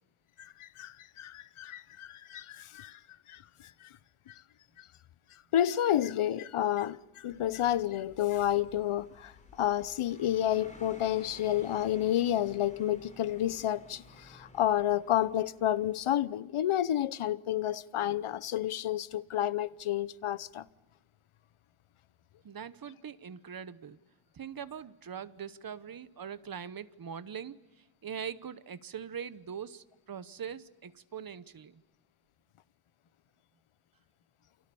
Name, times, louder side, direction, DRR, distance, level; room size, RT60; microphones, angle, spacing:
voice 1, 0.4-3.0 3.3-3.4 3.8-3.9 4.3-4.4 4.8-4.9 5.5-20.7, left 12 dB, 85° left, 0.9 m, -30 dB
sound 1, 7.3-16.2, left 1 dB, 15° left, 4.8 m, -55 dB
voice 2, 22.4-24.0 24.3-31.8, right 7 dB, 45° right, 1.0 m, -42 dB
29.0 x 28.0 x 7.0 m
wide cardioid pair, 175°, 49 cm